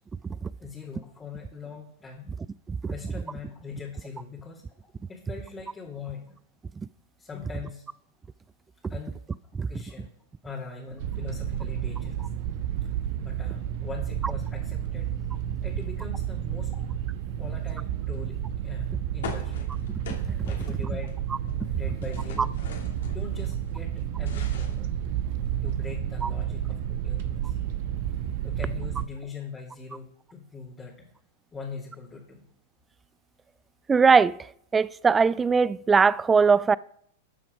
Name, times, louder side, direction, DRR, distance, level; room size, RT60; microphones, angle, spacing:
voice 1, 0.6-2.3 2.8-4.6 5.1-6.4 7.2-7.8 8.9-9.2 9.6-10.1 10.4-12.3 13.2-15.1 15.6-16.9 17.4-19.7 20.5-21.2 21.6-22.6 23.0-24.9 25.6-27.6 28.4-31.1 31.5-32.5, left 5 dB, 15° left, 2.6 m, -41 dB
sound 1, 11.0-29.1, right 10 dB, 50° right, 1.0 m, -31 dB
sound 2, 19.2-21.1 21.4-23.5 23.9-25.5, left 5 dB, 65° left, 2.8 m, -42 dB
voice 2, 33.9-34.4 34.7-36.8, right 5 dB, 15° right, 0.4 m, -20 dB
13.0 x 7.4 x 5.2 m
figure-of-eight pair, 95°, 0 cm